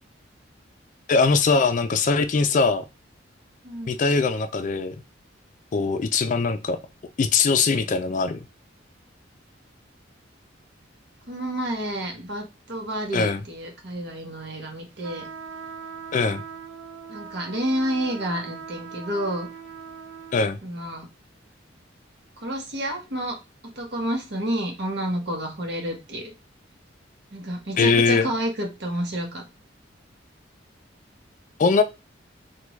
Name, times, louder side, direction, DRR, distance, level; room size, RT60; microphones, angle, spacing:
voice 1, 1.1-2.8 3.9-5.0 5.7-6.8 7.2-8.4 13.1-13.4 16.1-16.4 20.3-20.6 27.8-28.3 31.6-31.8, left 4 dB, 40° left, 0.3 m, -21 dB
voice 2, 3.6-4.0 11.3-15.3 17.1-19.5 20.6-21.1 22.4-23.4 23.8-26.3 27.3-29.4, right 1 dB, 60° right, 1.1 m, -29 dB
sound 1, 15.0-20.5, right 6 dB, 75° right, 0.5 m, -40 dB
3.4 x 2.3 x 3.1 m
head